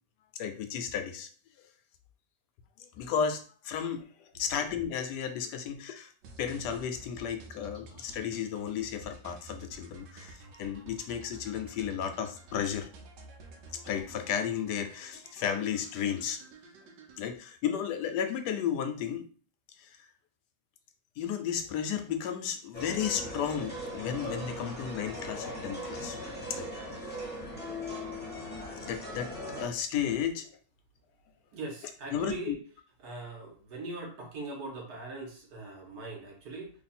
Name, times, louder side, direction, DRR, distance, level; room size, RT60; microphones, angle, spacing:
voice 1, 0.3-1.3 2.8-4.0 4.3-6.1 6.4-12.9 13.8-16.4 17.2-19.3 19.8-20.0 21.2-26.2 26.5-26.7 27.1-27.2 28.8-29.3 29.6-30.5 32.1-32.6, left 8 dB, 75° left, 7 dB, 1.1 m, -33 dB
sound 1, 6.2-17.2, right 3 dB, 80° right, 1.2 m, -51 dB
sound 2, 22.7-29.7, left 1 dB, 10° left, 0.8 m, -39 dB
voice 2, 31.5-32.6 33.0-36.7, right 3 dB, 65° right, 1 dB, 1.4 m, -40 dB
3.3 x 2.3 x 4.2 m, 0.41 s
omnidirectional pair, 1.9 m